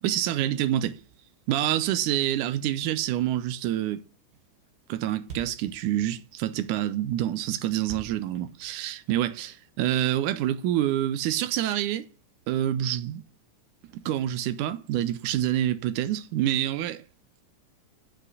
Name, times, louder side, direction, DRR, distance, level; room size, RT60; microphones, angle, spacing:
voice 1, 0.0-1.0 1.5-4.0 4.9-9.5 9.8-12.1 12.5-13.2 13.9-17.0, right 12 dB, 85° right, 2.2 m, -27 dB
Thump thud, 4.3-4.4 4.7-4.8 5.0-5.1 5.2-9.3, right 4 dB, 45° right, 2.4 m, -44 dB
7.8 x 6.1 x 6.6 m
omnidirectional pair, 3.6 m